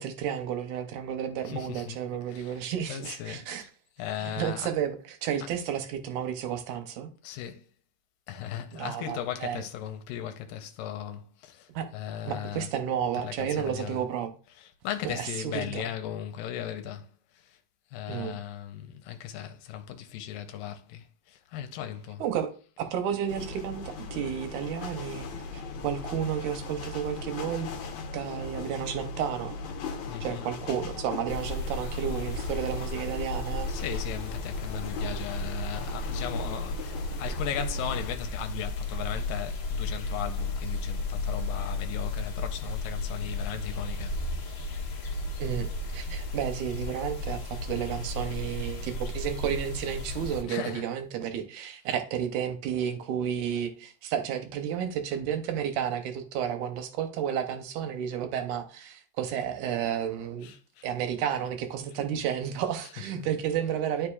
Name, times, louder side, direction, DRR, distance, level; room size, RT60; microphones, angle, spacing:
voice 1, 0.0-3.6 4.2-7.1 8.7-9.6 11.7-11.9 12.2-14.3 15.0-15.9 18.1-18.4 22.2-22.5 22.8-23.8 24.1-25.3 25.5-27.7 28.1-29.5 30.2-33.7 45.4-45.7 45.9-60.5 60.8-64.1, right 9 dB, 75° right, 2.0 m, -32 dB
voice 2, 1.5-2.0 2.3-2.6 2.9-3.5 4.0-4.7 7.2-7.7 8.3-12.7 13.1-14.0 14.8-17.1 17.3-17.6 17.9-22.2 30.1-30.5 33.7-44.2 50.5-50.8 60.4-60.9 63.2-63.3, left 10 dB, 85° left, 2.3 m, -37 dB
sound 1, 23.3-38.1, left 3 dB, 70° left, 2.0 m, -38 dB
sound 2, 31.3-50.4, left 2 dB, 50° left, 1.6 m, -34 dB
12.0 x 4.8 x 2.4 m
omnidirectional pair, 4.0 m